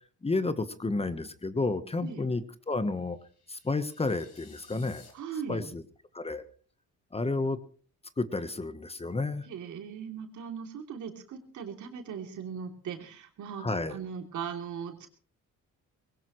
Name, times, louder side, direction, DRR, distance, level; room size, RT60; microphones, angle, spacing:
voice 1, 0.2-2.4 2.7-3.2 3.5-5.0 5.5-5.8 6.1-6.4 7.1-7.6 8.2-9.5 13.6-14.0, left 3 dB, 20° left, 12 dB, 1.2 m, -31 dB
sound 1, 3.1-5.1, left 5 dB, 55° left, 4.5 m, -57 dB
voice 2, 5.1-5.7 9.4-15.1, right 7 dB, 75° right, 4 dB, 3.0 m, -39 dB
20.5 x 17.5 x 3.2 m, 0.42 s
cardioid pair, 90°, 30 cm